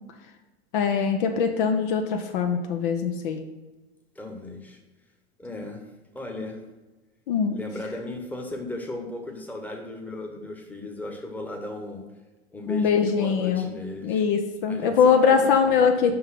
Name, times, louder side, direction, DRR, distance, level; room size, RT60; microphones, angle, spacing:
voice 1, 0.7-3.4 7.3-7.6 12.7-13.7 14.0-16.2, left 6 dB, 50° left, 5 dB, 0.9 m, -22 dB
voice 2, 4.1-4.8 5.4-6.7 7.5-12.0 12.5-14.2 14.7-16.2, left 2 dB, 5° left, 2 dB, 1.2 m, -36 dB
5.7 x 5.5 x 5.8 m, 1.2 s
figure-of-eight pair, 95°, 33 cm